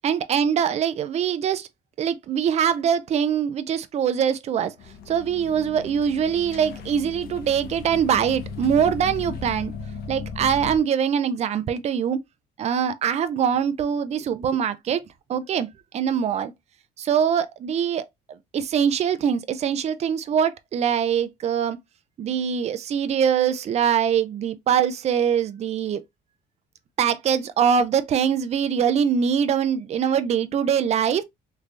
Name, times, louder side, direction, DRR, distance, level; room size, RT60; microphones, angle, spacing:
voice 1, 0.0-1.7 2.0-4.7 5.1-9.7 10.1-12.2 12.6-16.5 17.0-18.0 18.5-21.8 22.2-26.0 27.0-31.2, right 8 dB, 40° right, 0.5 m, -23 dB
sound 1, 4.8-10.8, left 6 dB, 65° left, 0.8 m, -36 dB
3.3 x 3.2 x 2.5 m
cardioid pair, 110°, 17 cm